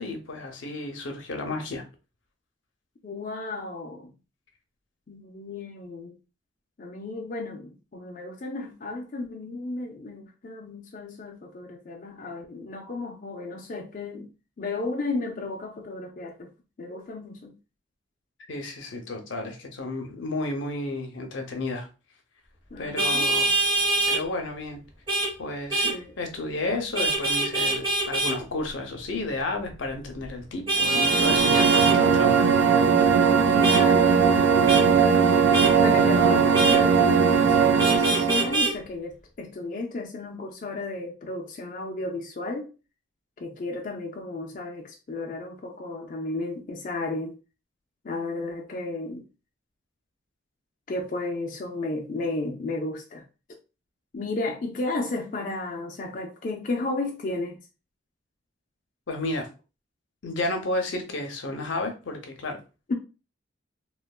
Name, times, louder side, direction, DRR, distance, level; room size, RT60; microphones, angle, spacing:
voice 1, 0.0-1.8 18.5-21.9 22.8-23.5 24.0-24.8 25.4-32.6 59.1-59.5 60.2-62.6, left 2 dB, 80° left, 0.7 m, -32 dB
voice 2, 3.0-4.1 5.1-6.2 6.8-14.3 14.6-16.5 16.8-17.5 22.7-23.3 25.8-26.1 33.5-34.6 34.9-35.3 35.8-42.7 43.4-47.4 48.0-49.2 50.9-53.2 54.1-57.6 62.9-63.0, left 2 dB, 40° left, 0.4 m, -33 dB
Vehicle horn car horn honking, 23.0-24.2 25.1-25.3 25.7-25.9 26.9-28.3 30.7-32.0 33.6-33.8 34.7-34.8 35.5-35.7 36.5-36.8 37.8-38.7, right 2 dB, 25° right, 0.8 m, -24 dB
sound 1, 30.8-38.6, right 6 dB, 75° right, 0.4 m, -19 dB
3.1 x 2.1 x 2.3 m
head